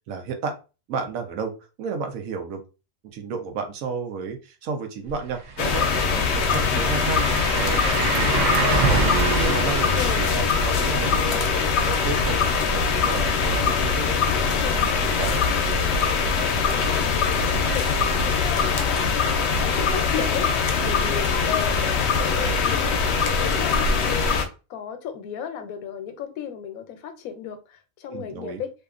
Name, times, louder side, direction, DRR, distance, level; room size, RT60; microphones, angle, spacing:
voice 1, 0.1-0.6 0.9-1.5 1.8-2.6 3.1-9.0 9.4-11.5 11.8-15.4 28.1-28.6, right 5 dB, 75° right, 1.1 m, -32 dB
sound 1, 5.1-5.2 5.5-15.3 15.6-15.7 18.5-18.6, right 3 dB, 50° right, 0.5 m, -28 dB
sound 2, 5.6-24.5, left 5 dB, 65° left, 0.7 m, -22 dB
voice 2, 16.7-20.5 20.8-22.9 23.4-24.3 24.7-28.7, left 8 dB, 90° left, 1.0 m, -34 dB
2.7 x 2.5 x 2.4 m
omnidirectional pair, 1.5 m